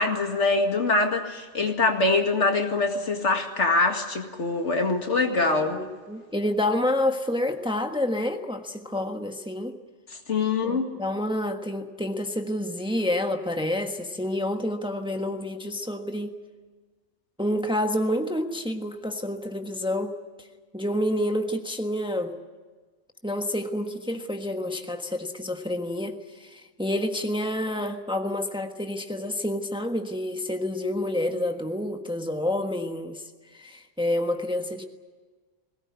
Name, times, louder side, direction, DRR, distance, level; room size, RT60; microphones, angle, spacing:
voice 1, 0.0-5.8 10.3-10.9, left 3 dB, 70° left, 4 dB, 2.4 m, -24 dB
voice 2, 5.4-9.8 10.6-16.3 17.4-20.5 20.7-22.4 23.2-33.2 33.5-34.8, left 1 dB, 5° right, 5 dB, 1.3 m, -28 dB
21.0 x 19.0 x 9.7 m, 1.4 s
omnidirectional pair, 1.3 m